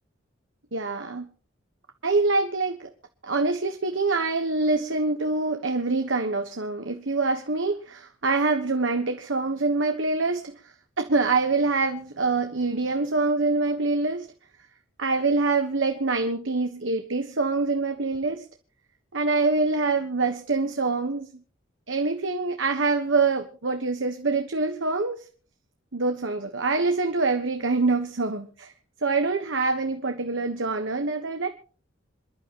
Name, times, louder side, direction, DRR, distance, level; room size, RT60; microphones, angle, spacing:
voice 1, 0.7-1.3 2.0-2.9 3.2-10.5 11.0-14.3 15.0-18.5 19.1-21.3 21.9-25.2 25.9-28.7 29.0-31.5, right 3 dB, 70° right, 1.4 m, -25 dB
27.5 x 11.5 x 3.1 m
head